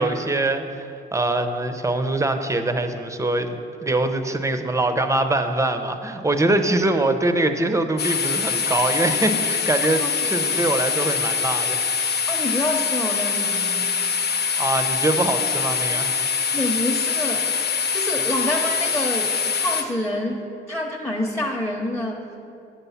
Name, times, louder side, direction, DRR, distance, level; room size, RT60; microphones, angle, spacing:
voice 1, 0.0-3.5 3.8-11.8 14.6-16.2, right 2 dB, 15° right, 7 dB, 0.7 m, -23 dB
sound 1, 8.0-19.8, left 6 dB, 55° left, 1.0 m, -24 dB
voice 2, 12.3-13.9 16.5-17.5 17.9-22.4, left 1 dB, 5° left, -2 dB, 0.9 m, -27 dB
8.9 x 6.9 x 5.7 m, 2.7 s
cardioid pair, 90°, 20 cm